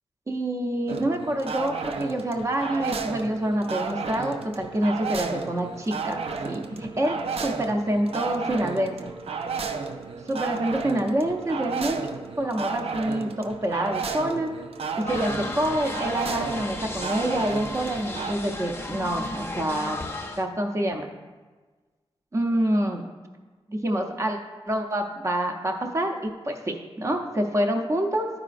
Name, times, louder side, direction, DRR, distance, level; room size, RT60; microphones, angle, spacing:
voice 1, 0.3-9.1 10.3-12.1 12.4-14.5 15.1-20.0 20.4-21.1 22.3-23.1 23.7-24.4 24.7-28.3, right 1 dB, 30° right, 3 dB, 0.6 m, -27 dB
sound 1, 0.9-18.3, right 5 dB, 80° right, 0.5 m, -33 dB
sound 2, 15.1-20.5, left 2 dB, 25° left, 0.5 m, -34 dB
11.5 x 4.9 x 2.5 m, 1.4 s
wide cardioid pair, 120°, 10 cm